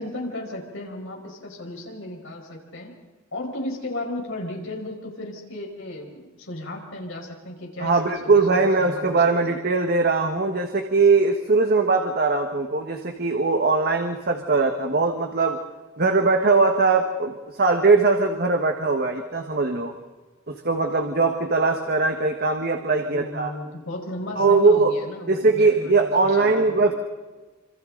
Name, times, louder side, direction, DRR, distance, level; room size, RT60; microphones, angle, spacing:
voice 1, 0.0-2.9 3.3-9.6 22.9-26.8, left 1 dB, 60° left, 0 dB, 4.9 m, -35 dB
voice 2, 7.8-15.6 16.0-19.9 20.5-23.5 24.4-24.9 25.3-26.9, right 3 dB, 45° right, 5 dB, 1.4 m, -20 dB
26.5 x 26.5 x 3.9 m, 1.2 s
head